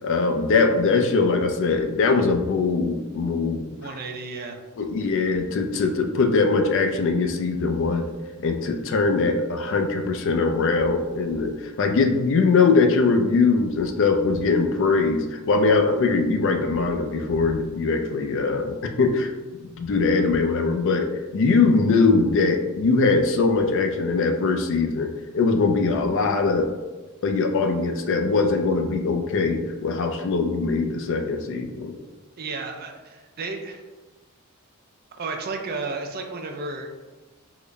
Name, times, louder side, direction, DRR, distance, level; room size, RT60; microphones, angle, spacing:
voice 1, 0.0-3.7 4.8-8.1 8.4-19.3 19.6-26.7 27.2-32.0, left 4 dB, 60° left, 5 dB, 0.4 m, -21 dB
voice 2, 3.8-4.6 32.4-33.8 35.2-37.0, right 3 dB, 45° right, 3 dB, 0.4 m, -33 dB
3.7 x 2.0 x 3.3 m, 1.2 s
head